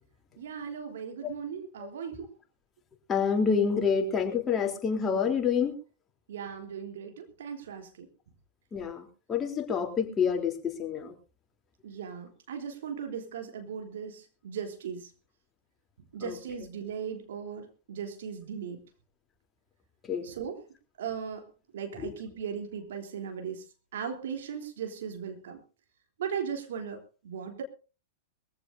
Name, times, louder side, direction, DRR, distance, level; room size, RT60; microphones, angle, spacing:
voice 1, 0.4-2.3 6.3-8.1 11.8-15.1 16.1-18.8 20.2-20.6 21.0-23.6 23.9-25.6 26.2-27.6, right 7 dB, 65° right, 3.4 m, -38 dB
voice 2, 3.1-5.7 8.7-10.5 10.8-11.1 16.2-16.3 20.1-20.2 22.0-22.1, left 6 dB, 20° left, 3.4 m, -27 dB
22.5 x 15.0 x 2.7 m
hypercardioid pair, 100°, 0 cm